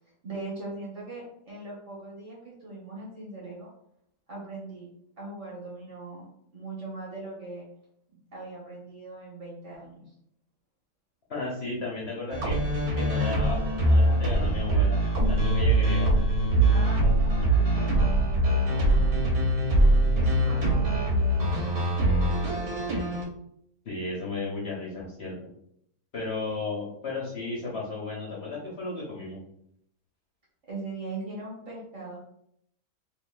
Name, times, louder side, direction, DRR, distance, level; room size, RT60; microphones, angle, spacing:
voice 1, 0.2-3.7 4.3-4.9 5.2-6.3 6.5-7.7 8.3-10.1 16.7-19.2 20.1-22.0 30.7-32.2, right 2 dB, 55° right, -5 dB, 1.5 m, -40 dB
voice 2, 11.3-12.6 13.0-15.0 15.3-16.2 23.8-25.4 26.1-29.4, left 3 dB, 50° left, -3 dB, 1.0 m, -34 dB
sound 1, 12.3-23.2, right 1 dB, 80° right, 1.3 m, -23 dB
4.0 x 2.9 x 2.5 m, 0.72 s
omnidirectional pair, 1.6 m